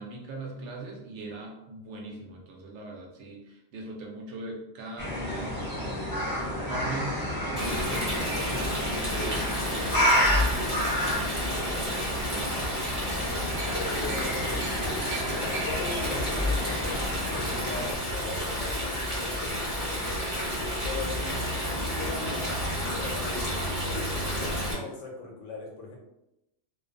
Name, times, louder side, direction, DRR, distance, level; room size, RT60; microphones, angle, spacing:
voice 1, 0.0-6.1 6.6-12.9 19.6-20.3, right 2 dB, 75° right, -1 dB, 1.0 m, -41 dB
sound 1, 5.0-17.9, equal, 20° left, 0.7 m, -31 dB
Stream, 7.6-24.7, left 1 dB, 15° right, 0.9 m, -30 dB
sound 2, 13.1-23.8 24.1-24.2 24.5-24.7, right 5 dB, 55° right, 0.5 m, -48 dB
voice 2, 13.9-14.6 15.4-17.0 17.3-19.7 20.8-22.5 22.9-26.0, left 3 dB, 85° left, 0 dB, 1.0 m, -40 dB
2.5 x 2.2 x 2.4 m, 0.89 s
omnidirectional pair, 1.2 m